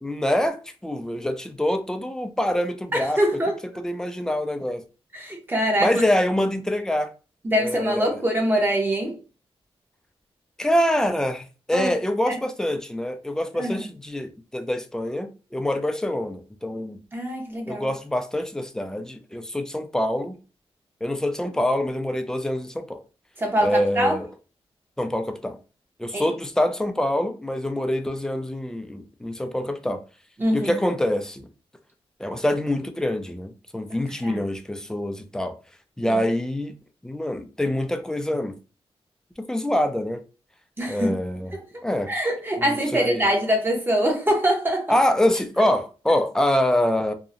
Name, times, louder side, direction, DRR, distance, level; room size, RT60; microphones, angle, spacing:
voice 1, 0.0-3.2 3.8-4.8 5.8-7.1 7.6-8.2 10.6-17.0 17.7-20.4 21.0-23.0 23.6-24.3 25.0-25.6 26.0-30.0 30.5-31.5 32.2-35.5 36.0-36.7 37.0-38.6 39.4-40.2 40.9-41.5 41.8-42.1 42.6-43.2 44.9-47.1, left 1 dB, 5° left, 0.3 m, -25 dB
voice 2, 2.9-3.6 5.1-6.0 7.4-9.2 11.7-11.9 12.3-12.4 13.6-13.9 17.1-17.9 23.4-24.2 26.1-26.3 30.4-30.8 34.2-34.4 36.1-36.2 40.8-41.2 41.5-41.6 42.1-45.0, equal, 20° right, 0.8 m, -24 dB
2.7 x 2.0 x 2.5 m
wide cardioid pair, 110°, 10 cm